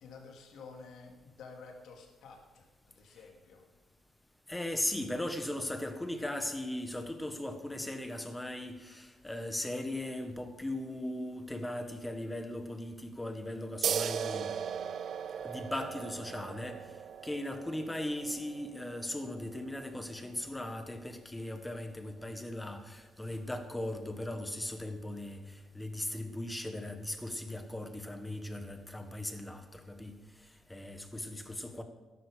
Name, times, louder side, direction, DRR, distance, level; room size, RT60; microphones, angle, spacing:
voice 1, 0.0-3.7, left 4 dB, 75° left, 2 dB, 2.6 m, -51 dB
voice 2, 4.5-14.5 15.4-16.8 17.2-25.4 25.7-30.1 30.7-31.8, left 1 dB, 10° left, 7 dB, 1.6 m, -38 dB
sound 1, 13.8-21.0, right 8 dB, 60° right, 0.5 m, -38 dB
13.0 x 11.0 x 5.2 m, 1.2 s
cardioid pair, 90°, 0 cm